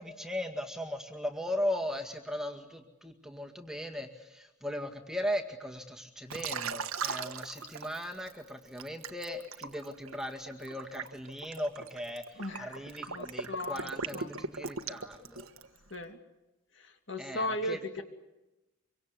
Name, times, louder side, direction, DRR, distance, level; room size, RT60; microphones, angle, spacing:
voice 1, 0.0-15.5 17.2-18.0, equal, ahead, 3 dB, 1.9 m, -38 dB
Liquid, 6.3-8.3 8.8-15.8, right 5 dB, 85° right, 1.7 m, -39 dB
voice 2, 12.4-14.3 15.9-16.2 16.8-18.0, left 1 dB, 60° left, 6 dB, 2.8 m, -37 dB
25.5 x 24.0 x 8.3 m, 0.99 s
head